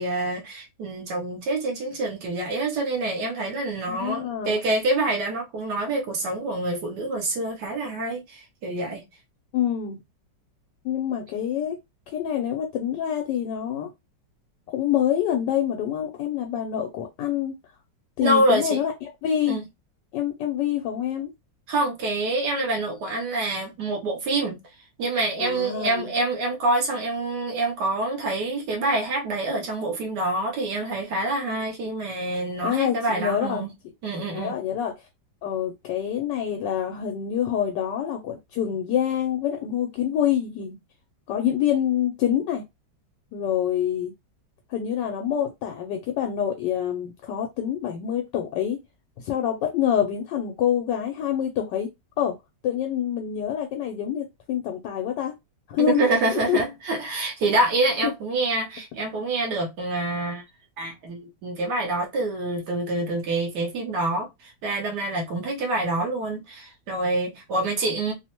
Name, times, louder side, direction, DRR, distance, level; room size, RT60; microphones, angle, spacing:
voice 1, 0.0-9.0 18.2-18.8 19.5-19.6 21.7-24.6 25.0-33.7 34.0-34.5 55.8-60.4 60.8-68.1, right 2 dB, 70° right, 1.2 m, -26 dB
voice 2, 3.9-4.6 9.5-10.0 10.8-11.8 12.1-13.9 14.7-17.5 18.2-18.9 19.2-19.6 20.1-21.3 25.4-26.1 32.6-33.7 34.2-34.9 35.4-40.8 41.3-42.6 43.3-44.1 44.7-48.8 49.2-51.9 52.2-52.3 52.6-55.3 55.7-56.1 56.5-56.6, left 10 dB, 80° left, 1.2 m, -26 dB
3.1 x 2.0 x 2.9 m
omnidirectional pair, 1.9 m